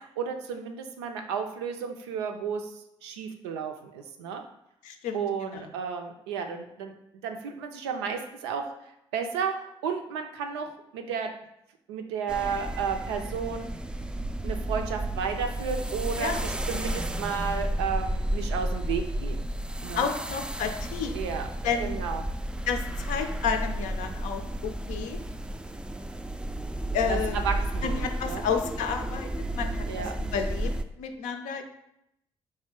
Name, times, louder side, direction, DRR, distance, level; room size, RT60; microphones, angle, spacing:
voice 1, 0.0-4.4 5.1-6.9 7.2-11.3 11.9-13.7 14.4-19.4 19.8-20.1 21.1-21.5 21.8-22.2 27.1-28.4 29.9-30.1, right 6 dB, 80° right, 5 dB, 0.4 m, -33 dB
voice 2, 4.8-5.6 16.2-16.4 20.0-21.2 21.6-22.0 22.7-25.2 26.9-27.4 27.8-29.3 29.6-30.7 31.0-31.6, left 6 dB, 65° left, 6 dB, 0.5 m, -31 dB
sound 1, 12.3-30.8, right 1 dB, 5° right, 0.3 m, -32 dB
4.2 x 3.1 x 3.7 m, 0.82 s
figure-of-eight pair, 40°, 14 cm